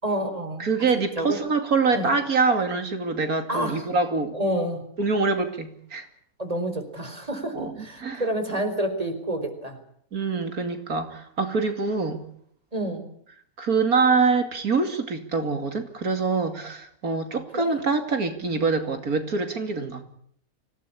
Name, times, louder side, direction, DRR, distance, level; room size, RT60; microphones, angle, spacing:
voice 1, 0.0-0.7 1.2-1.4 1.9-2.1 3.5-3.9 4.3-4.9 6.4-9.8 12.7-13.1 17.5-17.8, right 1 dB, 25° right, 8 dB, 4.4 m, -28 dB
voice 2, 0.6-4.4 5.0-6.0 7.5-7.7 8.0-8.6 10.1-12.2 13.6-20.0, right 4 dB, 90° right, 7 dB, 3.0 m, -25 dB
26.0 x 17.5 x 8.6 m, 0.66 s
omnidirectional pair, 1.5 m